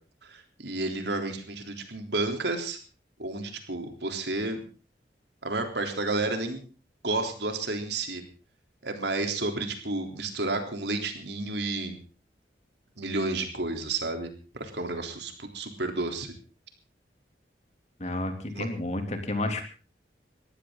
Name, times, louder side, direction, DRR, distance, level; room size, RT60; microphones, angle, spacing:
voice 1, 0.2-2.8 3.2-4.6 5.4-6.6 7.0-8.2 8.8-12.0 13.0-16.3 18.5-18.7, right 2 dB, 75° right, 5 dB, 3.6 m, -31 dB
voice 2, 18.0-19.6, left 2 dB, 35° left, 5 dB, 3.0 m, -31 dB
21.5 x 15.5 x 3.9 m, 0.36 s
head